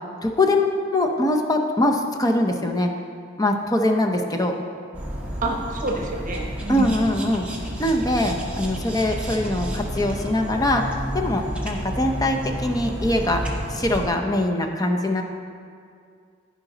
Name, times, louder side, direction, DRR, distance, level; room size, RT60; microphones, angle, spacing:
voice 1, 0.2-2.9 3.4-4.5 6.7-7.5 7.8-13.4 13.7-15.2, left 1 dB, 20° left, 3 dB, 0.6 m, -22 dB
sound 1, 4.9-14.1, equal, 5° right, 1.0 m, -31 dB
voice 2, 5.4-6.9, right 2 dB, 45° right, 0 dB, 1.0 m, -27 dB
15.0 x 5.1 x 3.9 m, 2.3 s
head